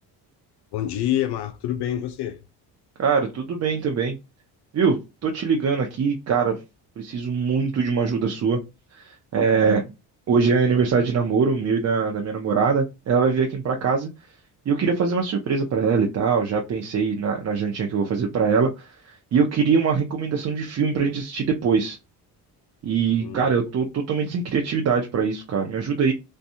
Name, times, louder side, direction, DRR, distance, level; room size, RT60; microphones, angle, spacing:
voice 1, 0.7-2.4 23.2-23.5, left 11 dB, 75° left, 0.5 m, -27 dB
voice 2, 3.0-4.2 4.7-6.6 7.0-8.6 8.9-9.8 10.3-14.1 14.7-22.0 22.8-26.1, right 5 dB, 40° right, 0.6 m, -22 dB
2.6 x 2.2 x 2.7 m
cardioid pair, 85°, 40 cm